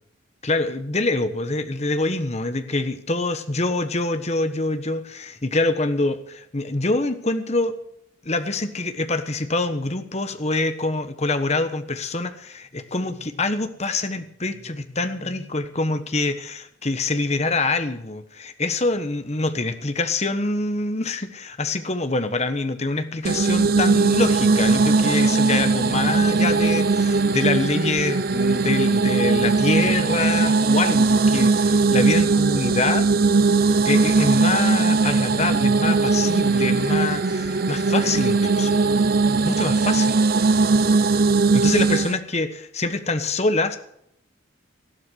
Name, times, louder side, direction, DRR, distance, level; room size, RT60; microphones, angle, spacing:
voice 1, 0.4-7.8 8.2-33.1 33.8-38.8 39.4-40.2 41.5-43.8, left 2 dB, 35° left, 9 dB, 1.2 m, -25 dB
sound 1, 23.2-42.2, right 3 dB, 50° right, 0.7 m, -19 dB
14.5 x 12.0 x 6.3 m, 0.73 s
head